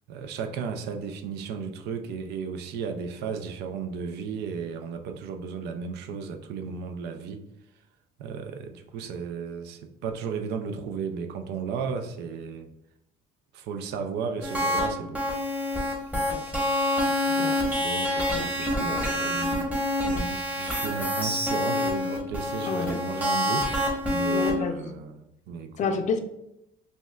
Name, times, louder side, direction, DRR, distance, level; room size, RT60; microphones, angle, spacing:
voice 1, 0.1-7.4 8.2-12.7 13.5-15.2 17.0-17.5 17.8-19.7 20.1-25.7, right 6 dB, 80° right, 7 dB, 0.5 m, -34 dB
sound 1, 14.4-14.9 15.1-24.5, left 1 dB, 10° right, 1.0 m, -27 dB
voice 2, 16.1-16.4 17.4-17.6 18.3-19.3 22.7-23.0 24.3-25.0 25.8-26.2, left 5 dB, 45° left, 7 dB, 0.5 m, -31 dB
5.2 x 2.2 x 2.3 m, 0.84 s
cardioid pair, 110°, 17 cm